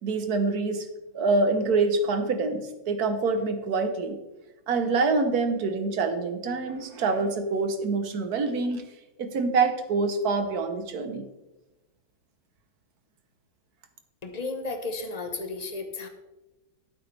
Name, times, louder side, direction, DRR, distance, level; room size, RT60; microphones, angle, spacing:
voice 1, 0.0-0.9 1.1-4.2 4.7-8.8 9.2-11.3, right 3 dB, 55° right, 8 dB, 1.4 m, -26 dB
voice 2, 14.2-16.1, left 3 dB, 30° left, 5 dB, 0.8 m, -33 dB
11.0 x 9.1 x 3.4 m, 1.0 s
omnidirectional pair, 2.2 m